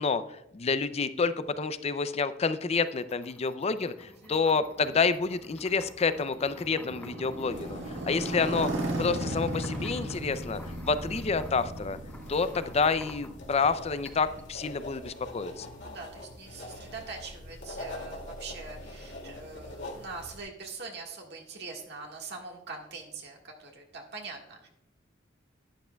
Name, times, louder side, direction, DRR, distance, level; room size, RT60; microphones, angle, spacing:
voice 1, 0.0-8.7 9.0-12.0 12.3-15.7, left 4 dB, 35° left, 14 dB, 0.4 m, -29 dB
sound 1, 2.6-13.6 14.1-14.5, left 1 dB, 10° left, 0.8 m, -52 dB
voice 2, 4.1-4.4 8.0-8.1 15.8-24.7, right 4 dB, 60° right, 0 dB, 1.6 m, -43 dB
Motorcycle, 4.5-14.4, right 1 dB, 85° right, 1.6 m, -36 dB
sound 2, 7.5-20.4, left 1 dB, 70° left, 2.3 m, -44 dB
11.5 x 11.0 x 2.3 m, 0.82 s
head